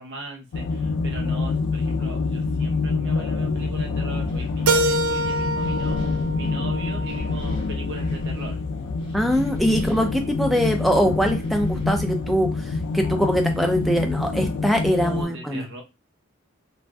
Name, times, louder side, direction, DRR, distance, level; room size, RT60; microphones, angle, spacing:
voice 1, 0.0-8.6 10.6-10.7 14.9-15.8, right 1 dB, 55° right, 0 dB, 0.8 m, -38 dB
sound 1, 0.5-15.2, left 3 dB, 75° left, 0.4 m, -26 dB
Wind, 3.5-15.0, equal, 25° left, 1.0 m, -41 dB
Keyboard (musical), 4.7-7.6, right 2 dB, 75° right, 0.4 m, -26 dB
voice 2, 9.1-15.7, equal, ahead, 3 dB, 0.3 m, -22 dB
2.5 x 2.1 x 3.4 m, 0.26 s
head